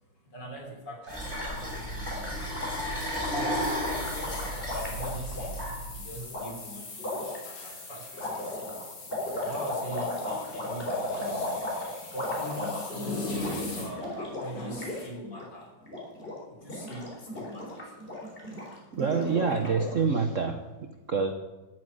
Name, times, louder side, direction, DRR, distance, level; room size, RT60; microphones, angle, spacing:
voice 1, 0.2-2.4 3.0-5.5 5.9-6.9 7.4-8.9 9.2-11.7 12.1-15.7 16.5-17.9, equal, 60° left, 0 dB, 4.3 m, -40 dB
Gurgling, 1.0-5.7 6.3-6.4 7.0-7.4 8.1-13.1 13.3-13.5 13.8-15.0 15.2-15.5 15.8-16.3 16.6-20.0, left 1 dB, 25° left, 4.3 m, -35 dB
sound 1, 1.1-6.1, equal, 10° left, 5.0 m, -34 dB
sound 2, 3.6-15.1, left 3 dB, 85° left, 3.8 m, -44 dB
voice 2, 18.9-20.6 21.1-21.3, right 5 dB, 50° right, 7 dB, 1.0 m, -26 dB
13.5 x 8.9 x 9.8 m, 1.1 s
omnidirectional pair, 2.2 m